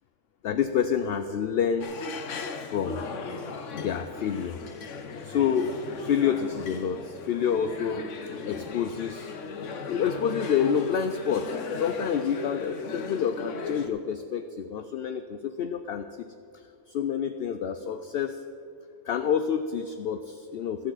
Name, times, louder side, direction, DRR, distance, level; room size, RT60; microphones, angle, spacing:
voice 1, 0.4-2.0 2.6-3.1 3.7-4.6 5.2-5.8 6.0-9.3 9.9-16.3 16.5-18.4 19.0-20.9, left 8 dB, 65° left, 9 dB, 0.7 m, -28 dB
sound 1, 1.8-13.9, left 4 dB, 80° left, 1.2 m, -37 dB
14.5 x 12.5 x 4.0 m, 2.7 s
omnidirectional pair, 1.2 m